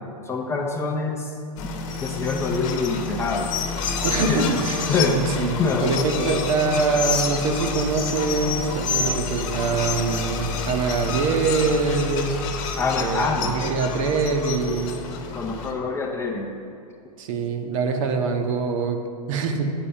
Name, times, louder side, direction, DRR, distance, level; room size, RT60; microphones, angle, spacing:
voice 1, 0.3-1.3 2.0-3.5 4.3-4.4 4.9-5.2 5.6-5.9 6.2-6.4 12.8-13.5 15.3-16.5, left 4 dB, 10° left, 0 dB, 0.6 m, -25 dB
sound 1, 1.6-15.7, left 5 dB, 45° left, 1.0 m, -29 dB
sound 2, 4.0-4.3 4.5-4.8 5.1-6.5 6.7-7.0 7.2-7.5 7.8-8.1 8.3-8.6 8.9-9.1 9.4-9.7 9.9-10.2 10.5-10.7, right 3 dB, 20° right, 0.8 m, -39 dB
voice 2, 4.0-12.4 13.0-15.0 17.2-19.7, right 4 dB, 50° right, 5 dB, 0.9 m, -24 dB
9.0 x 4.2 x 7.0 m, 2.6 s
hypercardioid pair, 120°, 21 cm